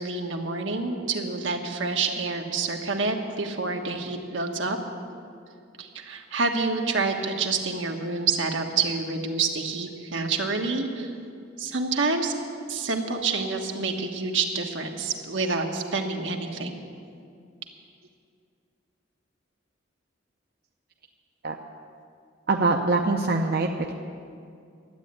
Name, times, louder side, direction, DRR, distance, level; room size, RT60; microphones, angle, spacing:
voice 1, 0.0-4.8 5.8-11.1 11.6-12.3 12.7-16.8, right 4 dB, 80° right, 3 dB, 1.4 m, -28 dB
voice 2, 22.5-23.9, right 3 dB, 55° right, 2 dB, 0.7 m, -23 dB
12.5 x 8.6 x 9.5 m, 2.4 s
head